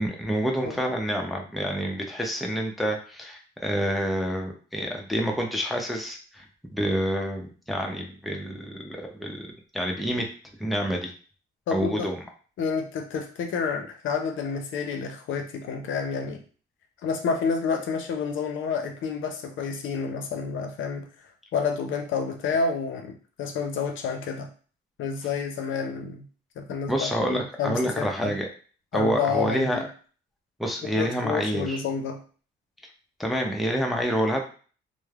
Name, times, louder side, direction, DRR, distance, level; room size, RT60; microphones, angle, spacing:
voice 1, 0.0-6.4 6.7-9.5 9.7-10.3 10.6-11.1 11.7-12.2 26.9-28.5 28.9-29.8 30.6-31.8 33.2-34.4, equal, ahead, 1 dB, 0.5 m, -28 dB
voice 2, 11.7-12.1 12.6-16.4 17.0-21.1 21.5-24.5 25.0-26.2 26.6-28.3 28.9-29.9 30.8-32.2, left 5 dB, 70° left, 4 dB, 0.5 m, -29 dB
3.1 x 2.0 x 2.3 m, 0.40 s
cardioid pair, 85°, 21 cm